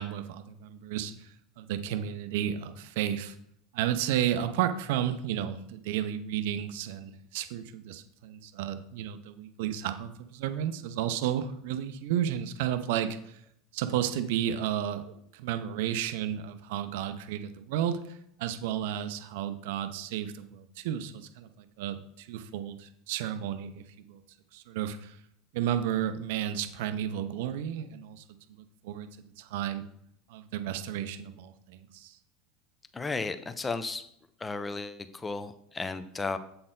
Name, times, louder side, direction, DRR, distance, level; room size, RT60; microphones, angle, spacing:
voice 1, 0.0-3.3 3.7-13.4 13.7-24.2 24.5-25.2 25.5-28.2 28.5-29.1 29.4-29.8 30.3-32.2, right 10 dB, 75° right, 10 dB, 0.5 m, -32 dB
voice 2, 32.9-34.0 34.4-36.4, left 3 dB, 20° left, 12 dB, 0.5 m, -34 dB
7.6 x 4.2 x 3.8 m, 0.72 s
hypercardioid pair, 90°, 0 cm